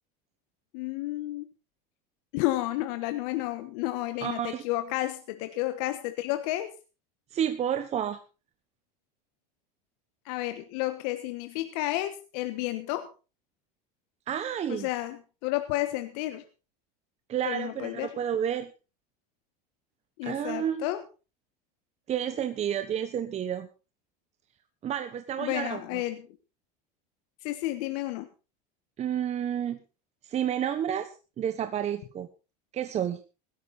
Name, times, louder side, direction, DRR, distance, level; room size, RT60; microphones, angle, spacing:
voice 1, 0.7-1.5 2.3-6.7 10.2-13.1 14.7-16.4 17.4-18.2 20.2-21.0 25.4-26.3 27.4-28.3, left 16 dB, 70° left, 9 dB, 1.4 m, -31 dB
voice 2, 4.2-4.6 7.3-8.2 14.3-14.9 17.3-18.7 20.2-20.8 22.1-23.7 24.8-26.0 29.0-29.8 30.2-31.1 31.4-32.3 32.7-33.2, right 9 dB, 30° right, 9 dB, 1.2 m, -30 dB
16.5 x 13.0 x 4.1 m, 0.32 s
supercardioid pair, 125°, 21 cm